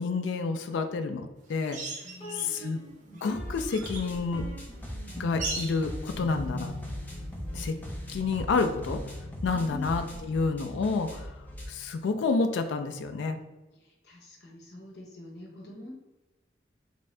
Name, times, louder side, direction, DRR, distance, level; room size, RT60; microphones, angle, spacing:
voice 1, 0.0-1.8 2.4-2.8 3.2-4.5 5.2-6.7 7.5-7.8 8.1-9.0 9.4-11.3 11.7-13.4, left 4 dB, 85° left, 7 dB, 0.3 m, -29 dB
sound 1, 1.7-2.7 3.1-4.1 5.4-5.9 8.2-8.3, right 3 dB, 40° right, 0.6 m, -38 dB
voice 2, 2.0-2.7 6.3-6.4 9.4-10.5 13.7-16.0, left 1 dB, 60° left, -1 dB, 0.9 m, -45 dB
sound 2, 2.2-11.9, left 1 dB, 35° left, 1.0 m, -43 dB
sound 3, 3.3-11.7, equal, 10° left, 0.5 m, -40 dB
3.4 x 2.6 x 3.2 m, 1.0 s
head